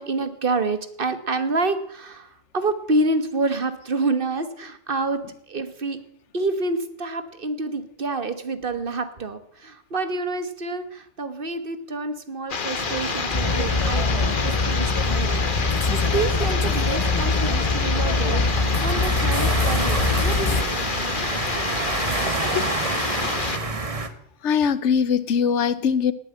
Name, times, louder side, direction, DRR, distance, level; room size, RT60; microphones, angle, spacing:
voice 1, 0.0-5.2 5.5-6.0 6.3-20.7, right 3 dB, 50° right, 11 dB, 1.5 m, -28 dB
sound 1, 12.5-23.6, left 5 dB, 45° left, 1.3 m, -28 dB
sound 2, 12.8-24.1, right 3 dB, 30° right, 1.3 m, -30 dB
sound 3, 13.3-20.6, left 3 dB, 30° left, 0.7 m, -23 dB
voice 2, 24.4-26.1, left 7 dB, 85° left, 17 dB, 1.2 m, -22 dB
18.5 x 9.2 x 7.7 m, 0.69 s
omnidirectional pair, 1.2 m